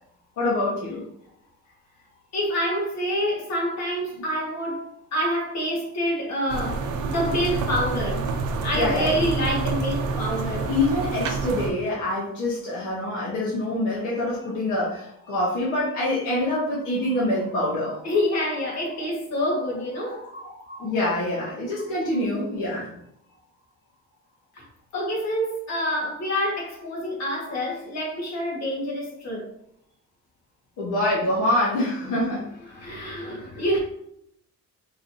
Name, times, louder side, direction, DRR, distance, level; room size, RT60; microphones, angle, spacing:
voice 1, 0.4-1.0 8.7-9.1 10.7-18.0 20.0-22.9 30.8-32.5, left 1 dB, 80° left, 1.3 m, -25 dB
voice 2, 2.3-8.3 8.6-10.7 18.0-20.2 24.9-29.5 32.0-32.2 32.7-33.8, equal, 60° left, 1.6 m, -27 dB
sound 1, 6.5-11.7, right 4 dB, 80° right, 0.7 m, -28 dB
4.6 x 3.1 x 2.7 m
cardioid pair, 90°, 30 cm